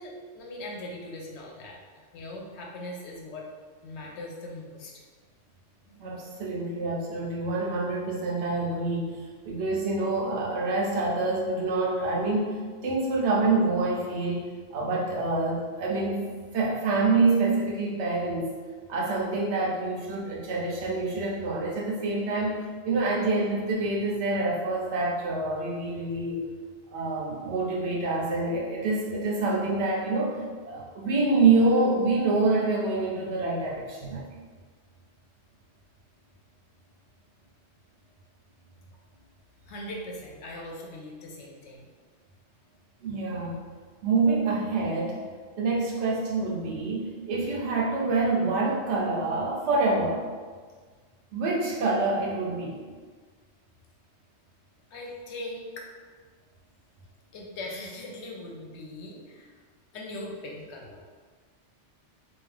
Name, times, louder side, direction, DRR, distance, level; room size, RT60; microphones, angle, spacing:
voice 1, 0.0-3.5 3.8-5.0 5.8-6.0 39.7-41.9 54.9-55.9 57.3-59.6 59.9-61.0, left 1 dB, 75° left, -1 dB, 0.9 m, -40 dB
voice 2, 6.0-9.1 9.5-12.5 12.8-14.4 14.7-16.2 16.5-18.5 18.9-26.4 26.9-34.2 43.0-43.6 44.0-45.2 45.6-50.2 51.3-52.8, right 3 dB, 75° right, -3 dB, 0.9 m, -26 dB
2.7 x 2.3 x 3.2 m, 1.5 s
omnidirectional pair, 1.2 m